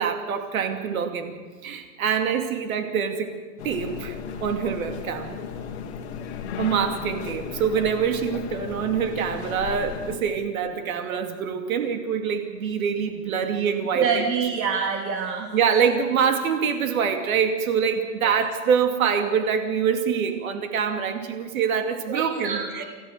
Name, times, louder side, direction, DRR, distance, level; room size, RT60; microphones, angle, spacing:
voice 1, 0.0-3.4 3.6-5.4 6.6-14.2 15.5-22.8, right 7 dB, 55° right, 6 dB, 2.5 m, -25 dB
sound 1, 3.6-10.2, left 7 dB, 40° left, 2.1 m, -35 dB
voice 2, 13.9-15.5 18.2-18.3 22.1-22.8, right 6 dB, 90° right, 2 dB, 2.7 m, -26 dB
28.0 x 14.0 x 6.7 m, 1.5 s
hypercardioid pair, 165°, 50 cm